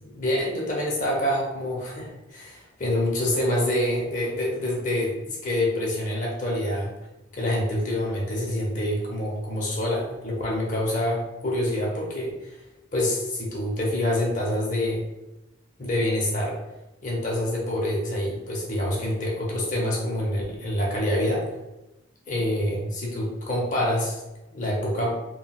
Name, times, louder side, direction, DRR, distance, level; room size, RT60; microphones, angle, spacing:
voice 1, 0.0-6.9 7.3-12.6 12.9-15.0 15.8-16.6 17.0-21.4 22.3-24.2 24.5-25.2, left 1 dB, 40° left, -4 dB, 0.8 m, -26 dB
3.6 x 2.3 x 2.3 m, 1.0 s
head